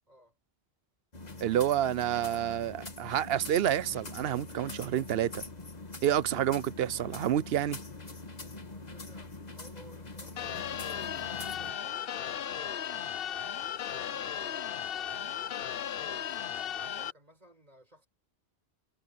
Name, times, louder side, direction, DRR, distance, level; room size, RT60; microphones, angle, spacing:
sound 1, 1.1-11.7, left 3 dB, 40° left, 1.8 m, -44 dB
voice 1, 1.4-5.4 6.0-7.8, right 11 dB, 75° right, 0.8 m, -29 dB
voice 2, 5.8-6.1 8.5-10.9 11.2-15.7 16.0-18.1, right 1 dB, 40° right, 4.9 m, -58 dB
sound 2, 10.4-17.1, left 9 dB, 65° left, 0.9 m, -36 dB
omnidirectional pair, 1.1 m